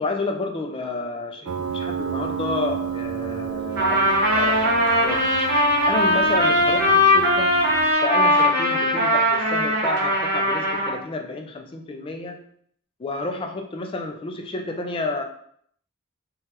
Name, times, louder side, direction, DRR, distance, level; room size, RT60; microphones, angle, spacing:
voice 1, 0.0-5.3 5.9-7.6 8.0-12.4 13.0-15.2, left 3 dB, 25° left, 4 dB, 0.3 m, -30 dB
Piano, 1.5-7.9, right 7 dB, 75° right, 0.3 m, -31 dB
Trumpet, 3.8-11.0, left 1 dB, 50° right, 1.0 m, -20 dB
3.1 x 2.3 x 2.9 m, 0.64 s
head